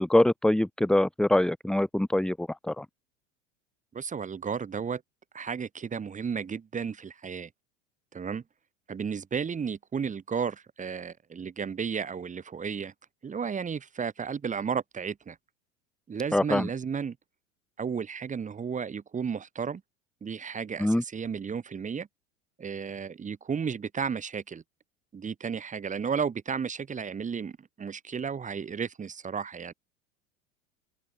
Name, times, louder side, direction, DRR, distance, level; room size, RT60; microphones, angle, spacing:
voice 1, 0.0-2.9 16.3-16.7 20.8-21.0, left 1 dB, ahead, 1.2 m, -24 dB
voice 2, 3.9-5.0 5.3-7.5 8.1-8.4 8.9-12.9 13.2-15.4 16.1-17.2 17.8-19.8 20.2-22.1 22.6-24.6 25.1-29.7, right 6 dB, 20° right, 2.6 m, -33 dB
open air
figure-of-eight pair, 80°, 38 cm